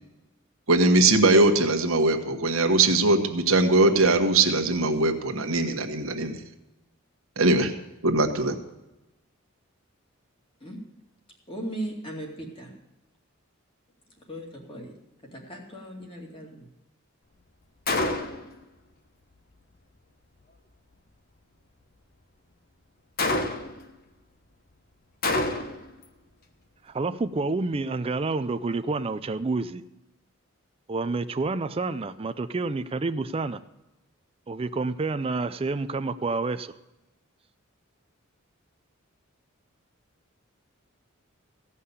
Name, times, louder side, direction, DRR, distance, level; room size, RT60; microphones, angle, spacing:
voice 1, 0.7-6.4 7.4-7.7 8.0-8.6, right 2 dB, 75° right, 5 dB, 1.3 m, -21 dB
voice 2, 11.5-12.7 14.3-14.9 15.2-16.7, right 1 dB, 25° left, 0 dB, 2.5 m, -37 dB
Gunshot gunfire, 17.9-18.5 23.2-23.9 25.2-25.9, left 2 dB, 45° left, 1.2 m, -27 dB
voice 3, 26.9-29.8 30.9-33.6 34.5-36.7, right 3 dB, 25° right, 11 dB, 0.4 m, -28 dB
16.0 x 5.6 x 8.2 m, 0.98 s
head